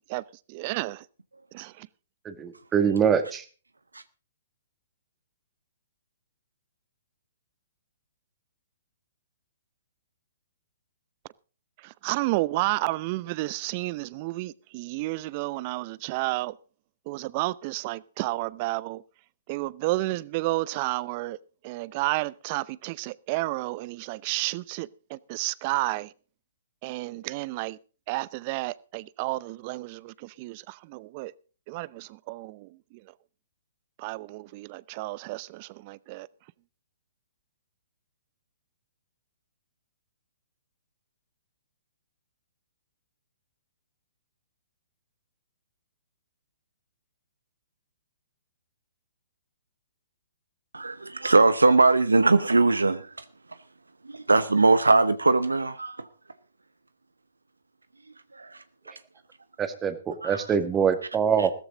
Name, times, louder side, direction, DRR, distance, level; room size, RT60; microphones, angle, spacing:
voice 1, 0.5-1.1 1.5-1.9 11.8-16.6 17.1-19.0 19.5-21.4 21.6-26.1 26.8-27.8 28.1-31.3 31.7-33.0 34.0-36.3, right 20 dB, 40° right, 0.7 m, -31 dB
voice 2, 2.3-3.4 59.6-61.5, right 7 dB, 20° right, 1.9 m, -24 dB
voice 3, 50.7-53.2 54.0-56.1 58.3-58.6 60.2-60.4 61.4-61.5, right 3 dB, 90° right, 0.9 m, -21 dB
16.0 x 14.0 x 3.9 m
figure-of-eight pair, 125°, 0 cm